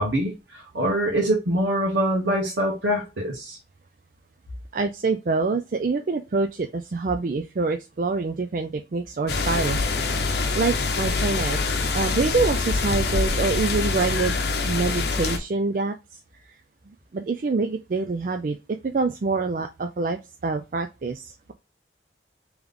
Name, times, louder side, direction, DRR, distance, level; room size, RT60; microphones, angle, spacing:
voice 1, 0.0-3.6, equal, 85° right, 1.1 m, -24 dB
voice 2, 4.7-9.8 10.5-16.2 16.9-21.5, right 3 dB, 45° right, 0.4 m, -26 dB
sound 1, 9.3-15.4, left 3 dB, 60° left, 0.7 m, -25 dB
3.5 x 3.1 x 3.7 m
head